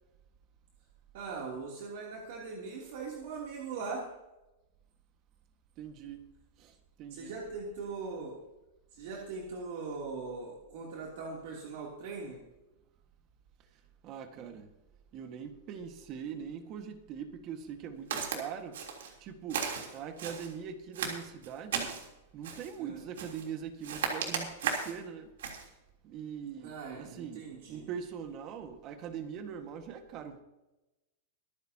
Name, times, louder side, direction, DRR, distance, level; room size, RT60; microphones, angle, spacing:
voice 1, 1.1-4.1 7.1-8.4 8.9-12.4 22.8-23.0 26.6-27.9, right 4 dB, 60° right, 3.0 m, -40 dB
voice 2, 5.8-6.2 6.6-7.3 14.0-14.7 15.1-18.8 19.2-22.0 22.3-25.3 25.6-25.7 26.0-30.4, right 7 dB, 35° right, 1.7 m, -42 dB
Walk footsteps, 18.1-18.4 18.7-19.1 19.5-20.5 20.9-22.1 22.4-22.7 23.2-23.5 23.8-25.0 25.4-25.7, right 6 dB, 80° right, 3.4 m, -35 dB
25.0 x 9.6 x 2.9 m
supercardioid pair, 150°, 0 cm